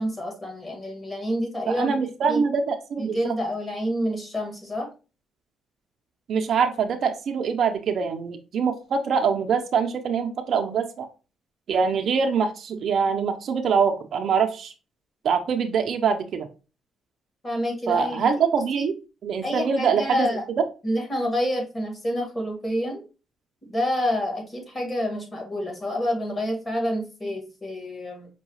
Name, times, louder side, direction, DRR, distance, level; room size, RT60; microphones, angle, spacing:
voice 1, 0.0-2.0 2.3-2.4 3.0-4.9 17.4-18.2 18.8-18.9 19.4-20.4 20.8-23.0 23.7-28.3, equal, 25° left, 1 dB, 1.8 m, -28 dB
voice 2, 1.7-3.3 6.3-11.1 11.7-14.7 15.2-16.5 17.9-19.0 19.2-20.3, right 6 dB, 60° right, 5 dB, 0.5 m, -24 dB
5.4 x 2.3 x 3.0 m, 0.32 s
cardioid pair, 90°, 0 cm